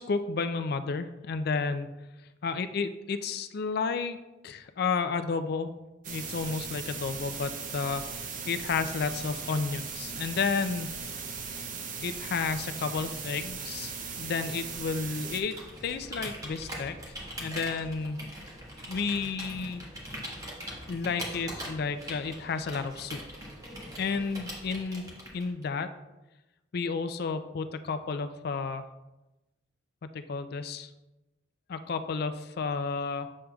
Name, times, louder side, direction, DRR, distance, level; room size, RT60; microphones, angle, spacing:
voice 1, 0.0-1.9 2.4-4.2 4.4-5.7 6.1-10.9 12.0-15.6 15.8-17.0 17.4-18.3 18.9-19.8 20.9-23.2 24.0-25.0 25.3-25.9 26.7-28.9 30.1-30.9 31.7-33.3, left 5 dB, 55° left, 10 dB, 0.4 m, -31 dB
sound 1, 6.0-15.4, right 5 dB, 45° right, 0.6 m, -38 dB
Computer keyboard, 15.4-25.6, equal, 20° right, 1.3 m, -41 dB
7.4 x 6.4 x 2.3 m, 1.0 s
head